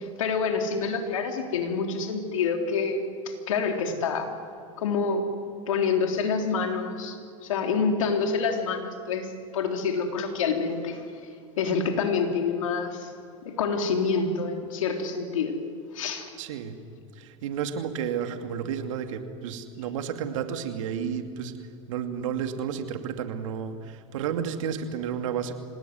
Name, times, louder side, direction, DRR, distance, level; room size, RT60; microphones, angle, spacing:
voice 1, 0.0-4.3 4.8-5.3 5.7-11.1 11.6-13.1 13.4-15.5 15.9-16.3, left 5 dB, 80° left, 4 dB, 3.7 m, -27 dB
voice 2, 16.4-16.8 17.1-21.5 21.9-25.5, right 8 dB, 75° right, 7 dB, 2.6 m, -31 dB
26.0 x 18.5 x 9.6 m, 2.2 s
hypercardioid pair, 100°, 17 cm